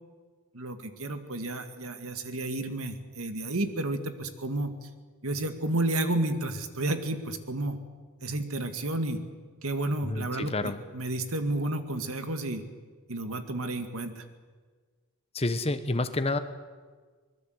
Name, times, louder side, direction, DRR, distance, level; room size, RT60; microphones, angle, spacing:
voice 1, 0.5-4.7 5.2-7.8 8.2-9.2 9.6-12.6 13.1-14.2, right 2 dB, 75° right, 8 dB, 2.0 m, -31 dB
voice 2, 10.0-10.8 15.3-16.4, left 2 dB, 25° left, 10 dB, 1.1 m, -29 dB
24.5 x 20.0 x 8.0 m, 1.5 s
head